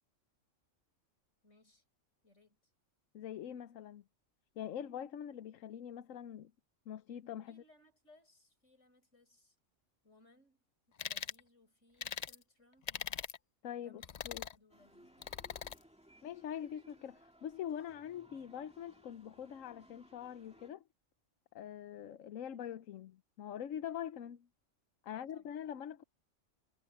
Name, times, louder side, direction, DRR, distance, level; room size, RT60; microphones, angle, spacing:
voice 1, 1.4-1.8 2.2-2.7 7.4-9.6 10.0-12.9 13.8-14.1 14.5-15.5 25.1-25.6, left 2 dB, 70° left, 6.6 m, -67 dB
voice 2, 3.1-4.0 4.6-6.5 6.9-7.6 13.6-14.5 16.2-20.8 21.5-24.5 25.0-26.0, left 9 dB, 85° left, 1.2 m, -44 dB
sound 1, 11.0-11.4 12.0-12.4 12.9-13.4 14.0-14.6 15.2-15.8, left 7 dB, 50° left, 0.5 m, -41 dB
sound 2, 14.7-20.7, right 1 dB, 5° right, 2.0 m, -63 dB
omnidirectional pair, 1.3 m